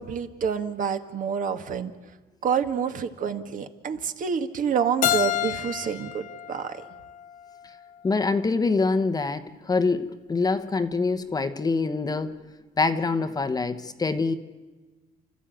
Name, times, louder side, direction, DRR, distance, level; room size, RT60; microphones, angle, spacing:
voice 1, 0.0-1.9 2.4-6.8, right 7 dB, 50° right, 7 dB, 1.6 m, -28 dB
Keyboard (musical), 5.0-7.8, left 10 dB, 50° left, 0.9 m, -29 dB
voice 2, 8.0-12.4 12.8-14.3, left 4 dB, 20° left, 10 dB, 1.0 m, -25 dB
29.5 x 13.0 x 9.0 m, 1.3 s
cardioid pair, 110°, 17 cm